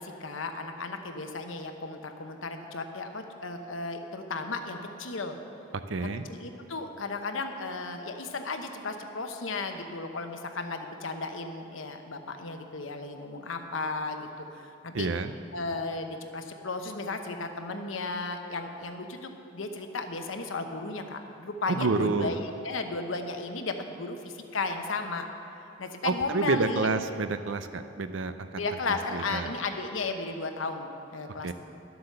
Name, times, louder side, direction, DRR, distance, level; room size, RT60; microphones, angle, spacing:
voice 1, 0.0-5.4 6.0-15.1 15.5-25.3 25.8-26.9 28.6-31.5, left 3 dB, 90° left, 5 dB, 1.0 m, -35 dB
voice 2, 5.9-6.2 14.9-15.3 21.7-22.4 26.0-28.6 29.1-29.5 31.4-31.5, right 3 dB, 75° right, 10 dB, 0.6 m, -28 dB
12.0 x 7.9 x 6.7 m, 2.8 s
head